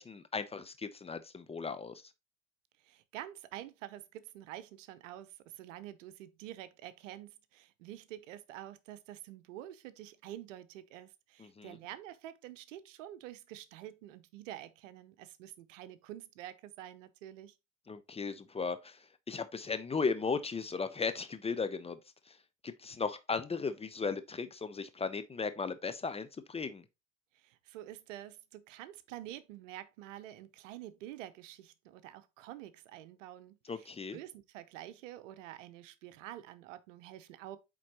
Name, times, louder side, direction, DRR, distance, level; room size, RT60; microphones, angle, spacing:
voice 1, 0.0-1.9 11.4-11.8 17.9-19.0 19.3-22.0 22.6-26.8 33.7-34.2, left 5 dB, 15° left, 0.6 m, -36 dB
voice 2, 2.8-17.6 27.3-37.6, right 13 dB, 70° right, 0.8 m, -48 dB
8.4 x 3.8 x 2.9 m
hypercardioid pair, 80°, 39 cm